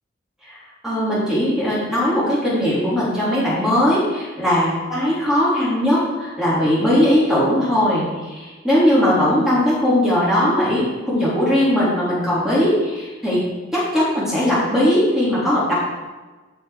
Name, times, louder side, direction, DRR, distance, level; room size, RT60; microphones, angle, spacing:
voice 1, 0.5-13.4 13.7-15.7, equal, ahead, -9 dB, 3.2 m, -19 dB
14.5 x 5.9 x 5.0 m, 1.2 s
head